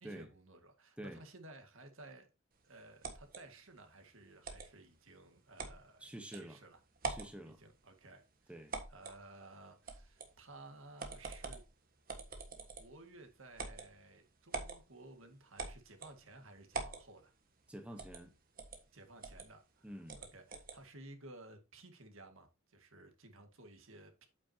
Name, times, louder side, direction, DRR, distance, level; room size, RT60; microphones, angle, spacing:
voice 1, 0.0-2.3 2.6-6.8 7.5-11.6 12.6-17.3 18.9-24.3, right 2 dB, 70° right, 1.9 m, -56 dB
sound 1, 3.0-3.4 4.4-4.7 5.6-5.8 6.3-6.4 7.0-7.3 8.7-9.2 9.9-10.3 11.0-11.7 12.1-13.0 13.6-13.9 14.5-14.8 15.6-16.2 16.7-17.0 18.0-18.2 18.6-18.8 19.2-19.5 20.1-20.8, right 3 dB, 40° right, 1.5 m, -43 dB
voice 2, 6.0-6.6 7.1-7.6 8.5-8.8 17.7-18.3 19.8-20.2, right 1 dB, 5° right, 1.0 m, -48 dB
8.6 x 8.4 x 2.8 m
head